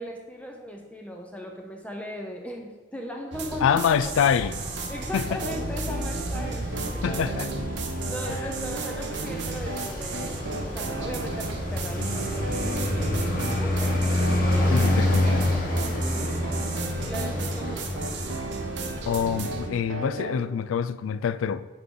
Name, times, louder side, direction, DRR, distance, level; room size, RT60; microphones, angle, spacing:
voice 1, 0.0-4.0 4.4-4.5 4.9-7.3 8.0-14.0 14.3-15.6 16.0-16.4 17.0-18.0, equal, 5° left, 0.6 m, -38 dB
sound 1, 3.3-19.7, right 3 dB, 60° right, 0.7 m, -36 dB
voice 2, 3.6-4.6 5.1-5.4 7.0-7.5 14.7-15.5 19.1-21.7, left 7 dB, 85° left, 0.3 m, -25 dB
Traffic noise roadway noise, 4.0-19.5, left 1 dB, 45° left, 1.0 m, -29 dB
sound 2, 5.4-20.4, right 2 dB, 90° right, 0.9 m, -36 dB
9.6 x 3.6 x 3.7 m
head